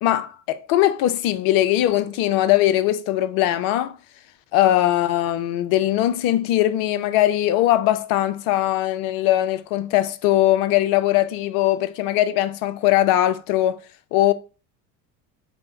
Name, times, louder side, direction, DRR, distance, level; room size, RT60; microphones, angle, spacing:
voice 1, 0.0-4.0 4.5-13.8 14.1-14.3, left 13 dB, 50° left, 0.5 m, -20 dB
4.8 x 2.1 x 3.5 m
hypercardioid pair, 75°, 46 cm